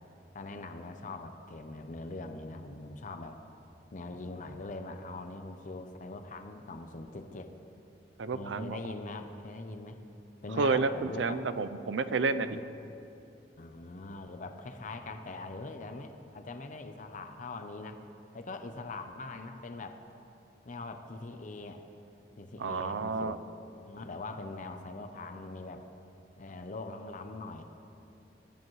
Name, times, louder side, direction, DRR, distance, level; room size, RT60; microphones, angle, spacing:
voice 1, 0.3-3.4 3.9-7.5 8.3-10.0 10.4-11.4 12.5-13.0 13.6-18.0 18.3-20.0 20.6-21.8 22.4-23.4 23.8-25.8 26.4-27.6, left 2 dB, 45° left, 7 dB, 0.6 m, -42 dB
voice 2, 8.2-8.8 10.6-12.6 22.6-23.4, right 4 dB, 80° right, 12 dB, 0.5 m, -30 dB
20.0 x 10.0 x 3.1 m, 2.8 s
head